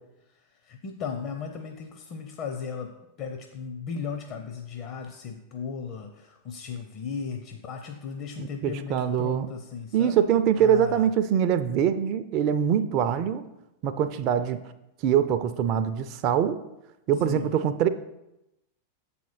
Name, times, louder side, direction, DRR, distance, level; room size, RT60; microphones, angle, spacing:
voice 1, 0.6-2.9 3.2-10.2 10.6-11.1 17.2-17.5, left 6 dB, 40° left, 4 dB, 0.6 m, -36 dB
voice 2, 8.4-9.5 9.9-13.4 13.8-14.6 15.0-16.6 17.1-17.9, right 9 dB, 40° right, 9 dB, 0.4 m, -23 dB
7.4 x 4.2 x 5.7 m, 0.91 s
figure-of-eight pair, 90°, 0 cm